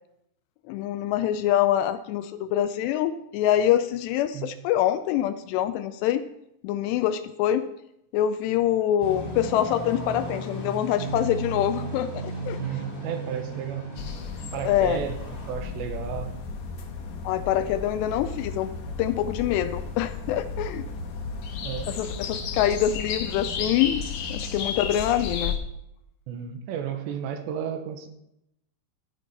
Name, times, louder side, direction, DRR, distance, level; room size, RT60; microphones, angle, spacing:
voice 1, 0.7-6.2 6.6-7.6 8.1-12.6 14.7-15.0 17.2-18.7 19.0-20.9 21.9-24.0 24.3-25.6, left 11 dB, 80° left, 11 dB, 2.6 m, -25 dB
sound 1, 9.0-15.5, right 1 dB, 20° left, 1.1 m, -35 dB
voice 2, 12.6-13.9 14.5-16.4 21.6-22.0 26.3-28.1, right 8 dB, 80° right, 7 dB, 3.2 m, -33 dB
sound 2, 14.0-25.6, left 5 dB, 65° left, 2.0 m, -33 dB
12.0 x 10.0 x 4.2 m, 0.80 s
omnidirectional pair, 5.2 m